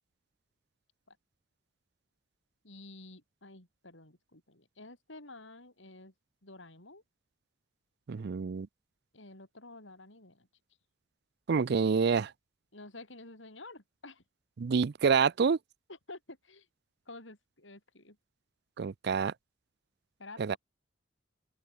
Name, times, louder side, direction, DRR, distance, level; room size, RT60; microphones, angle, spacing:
voice 1, 2.6-6.1 6.4-7.0 9.1-10.5 12.7-14.2 15.0-15.2 16.1-16.7 17.1-18.2 20.2-20.6, left 2 dB, 75° left, 6.8 m, -50 dB
voice 2, 8.1-8.7 11.5-12.3 14.6-15.6 18.8-19.3 20.4-20.6, right 5 dB, 60° right, 0.4 m, -27 dB
open air
head